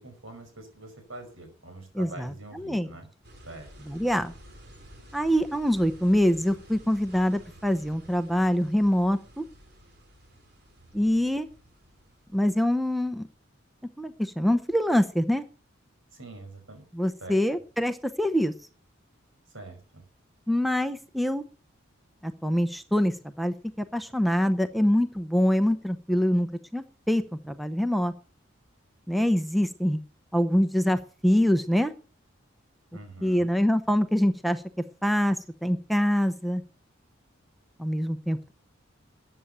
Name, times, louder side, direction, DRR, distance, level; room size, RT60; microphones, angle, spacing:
voice 1, 0.0-3.1 3.5-3.7 16.1-16.8 17.2-17.4 19.5-20.0 32.9-33.5, right 2 dB, 85° right, 5 dB, 5.5 m, -44 dB
voice 2, 2.0-2.9 3.9-4.3 5.1-9.4 10.9-11.5 12.3-13.3 14.0-15.4 16.9-18.5 20.5-21.4 22.2-26.5 26.7-28.1 29.1-30.0 30.3-31.9 33.2-34.6 35.0-36.6 37.8-38.5, equal, ahead, 9 dB, 0.7 m, -25 dB
sound 1, 3.2-13.3, equal, 55° right, 3.8 m, -52 dB
14.0 x 8.9 x 6.8 m, 0.38 s
head